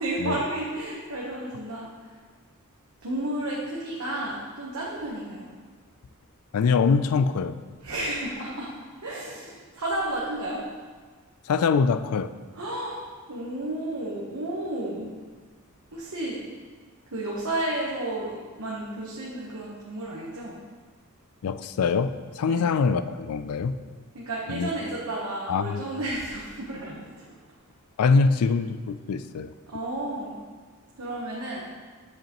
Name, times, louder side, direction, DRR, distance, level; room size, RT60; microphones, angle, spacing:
voice 1, 0.0-2.1 3.0-5.5 7.8-8.7 8.9-10.7 12.5-13.0 13.3-15.1 15.9-16.4 17.1-20.6 22.4-22.7 24.1-27.4 29.7-30.4 31.0-31.6, right 1 dB, 70° right, -5 dB, 1.1 m, -32 dB
voice 2, 6.5-7.6 11.5-12.3 21.4-23.8 24.5-24.7 25.5-25.8 28.0-29.5, left 5 dB, 75° left, 13 dB, 0.4 m, -24 dB
7.6 x 7.4 x 3.0 m, 1.5 s
head